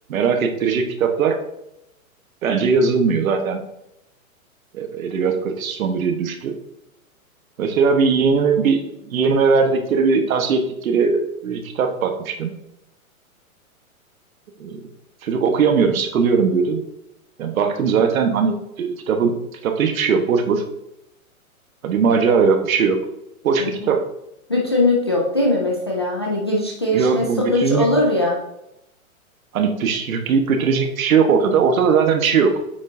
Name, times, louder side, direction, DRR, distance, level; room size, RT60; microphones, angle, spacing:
voice 1, 0.1-1.4 2.4-3.6 4.7-6.5 7.6-12.5 14.6-14.8 15.2-16.8 17.4-19.3 19.6-20.6 21.8-23.0 23.4-24.0 26.9-27.9 29.5-32.6, right 5 dB, 70° right, 6 dB, 1.3 m, -19 dB
voice 2, 23.6-23.9 24.5-28.4, left 2 dB, 20° left, -3 dB, 0.3 m, -20 dB
8.6 x 5.4 x 2.7 m, 0.85 s
hypercardioid pair, 155°, 43 cm